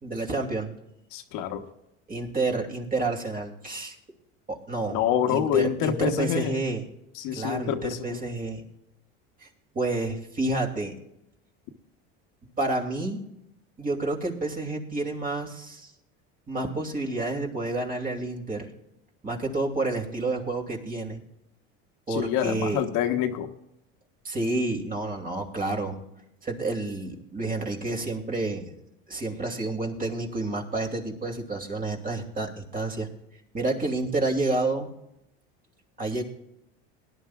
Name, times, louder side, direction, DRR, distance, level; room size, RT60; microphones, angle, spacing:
voice 1, 0.0-0.8 2.1-3.9 4.5-5.0 5.3-6.8 7.3-8.6 9.4-9.5 9.7-10.9 12.6-13.2 13.8-15.9 16.5-18.7 19.2-21.2 22.1-22.8 24.2-26.0 26.4-28.7 29.1-33.1 33.5-34.9 36.0-36.2, right 2 dB, 25° right, 2 dB, 2.7 m, -29 dB
voice 2, 1.1-1.6 4.9-6.6 7.1-8.2 22.1-23.5, left 9 dB, 70° left, 5 dB, 1.3 m, -26 dB
19.0 x 11.0 x 2.4 m, 0.81 s
supercardioid pair, 95°, 31 cm